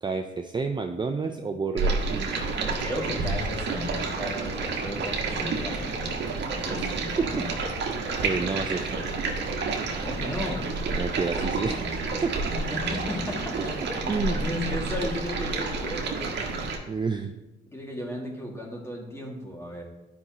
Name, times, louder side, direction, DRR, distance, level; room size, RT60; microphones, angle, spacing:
voice 1, 0.0-2.3 6.8-6.9 7.2-7.5 8.2-8.9 10.9-11.9 12.2-12.3 14.1-14.4 16.9-17.3, right 4 dB, 25° right, 5 dB, 0.5 m, -29 dB
Stream, 1.8-16.8, right 3 dB, 65° right, 1.4 m, -29 dB
voice 2, 2.8-5.9 6.6-6.9 10.0-10.6 12.7-16.6 17.7-19.8, left 1 dB, 15° left, -1 dB, 2.0 m, -35 dB
11.0 x 5.4 x 2.9 m, 1.1 s
cardioid pair, 90°, 20 cm